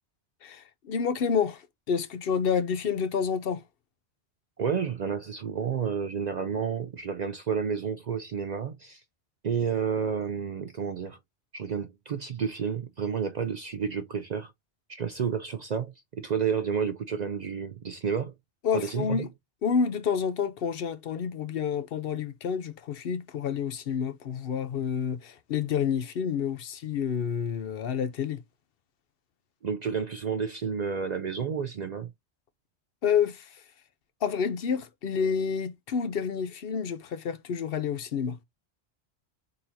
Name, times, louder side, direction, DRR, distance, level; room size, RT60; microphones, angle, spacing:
voice 1, 0.4-3.6 18.6-19.3 19.6-28.4 33.0-33.6 34.2-38.4, left 7 dB, 65° left, 0.8 m, -29 dB
voice 2, 4.6-9.0 9.4-11.2 11.5-14.5 14.9-18.3 18.7-19.3 29.6-32.1, right 6 dB, 55° right, 0.5 m, -30 dB
4.3 x 3.9 x 2.6 m
omnidirectional pair, 1.1 m